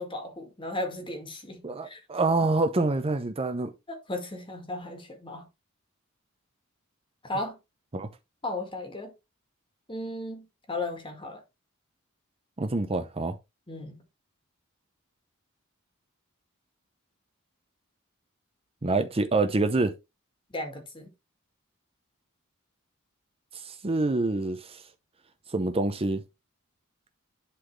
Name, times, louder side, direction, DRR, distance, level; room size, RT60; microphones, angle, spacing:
voice 1, 0.0-2.0 3.9-5.5 7.2-7.6 8.4-9.1 9.9-11.4 13.7-14.0 20.5-21.1, left 2 dB, 25° left, 2.0 m, -35 dB
voice 2, 1.6-3.7 7.9-8.1 12.6-13.4 18.8-19.9 23.5-24.8 25.5-26.2, right 2 dB, 25° right, 0.7 m, -26 dB
11.0 x 4.0 x 3.2 m
head